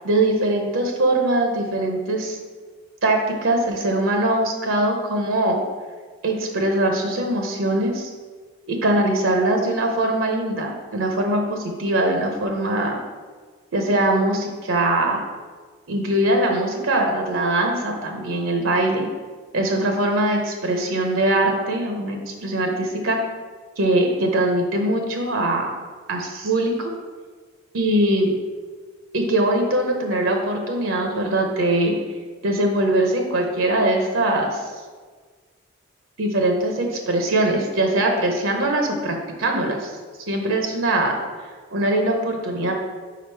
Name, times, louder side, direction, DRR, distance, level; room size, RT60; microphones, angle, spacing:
voice 1, 0.0-2.4 3.0-5.6 6.2-8.1 8.7-13.0 13.7-15.3 15.9-19.1 19.5-23.2 23.8-25.7 26.1-26.9 27.7-28.3 29.1-31.9 32.4-34.6 36.2-39.9 40.3-41.2 41.7-42.7, right 1 dB, 75° right, 2 dB, 0.7 m, -22 dB
5.0 x 4.8 x 4.5 m, 1.5 s
head